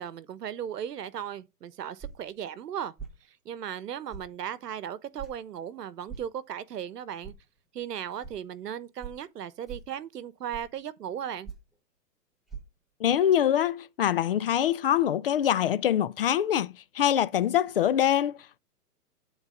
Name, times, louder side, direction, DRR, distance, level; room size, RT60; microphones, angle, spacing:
voice 1, 0.0-2.9 3.3-7.3 7.7-11.5, right 9 dB, 75° right, 1.1 m, -37 dB
sound 1, 2.0-2.3 3.0-3.2 4.1-4.3 5.2-5.3 6.1-6.3 7.2-7.4 8.2-8.3 9.0-9.2 9.7-9.9 10.5-10.8 11.4-11.7 12.5-12.6, right 6 dB, ahead, 0.9 m, -41 dB
voice 2, 13.0-18.6, left 10 dB, 40° left, 0.4 m, -24 dB
10.0 x 4.1 x 5.2 m
hypercardioid pair, 145°, 48 cm